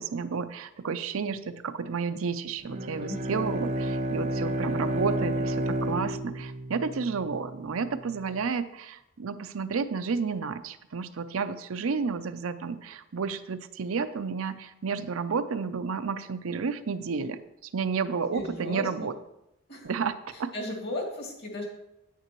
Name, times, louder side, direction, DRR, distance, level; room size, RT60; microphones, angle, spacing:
voice 1, 0.0-17.4 17.7-19.2 19.8-20.5, right 5 dB, 80° right, 11 dB, 0.5 m, -31 dB
Bowed string instrument, 2.6-7.4, right 1 dB, 35° right, 0.7 m, -30 dB
voice 2, 18.3-19.1 19.7-19.9 20.3-21.7, left 1 dB, 55° left, -1 dB, 2.3 m, -36 dB
9.4 x 8.9 x 3.0 m, 0.86 s
head